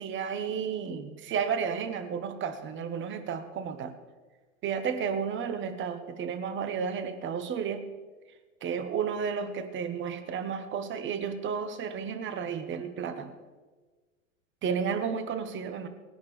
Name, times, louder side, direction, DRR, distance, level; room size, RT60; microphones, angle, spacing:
voice 1, 0.0-4.0 4.6-7.9 8.6-13.3 14.6-15.9, right 6 dB, 30° right, 9 dB, 1.2 m, -32 dB
18.5 x 10.5 x 3.3 m, 1.3 s
hypercardioid pair, 115°, 39 cm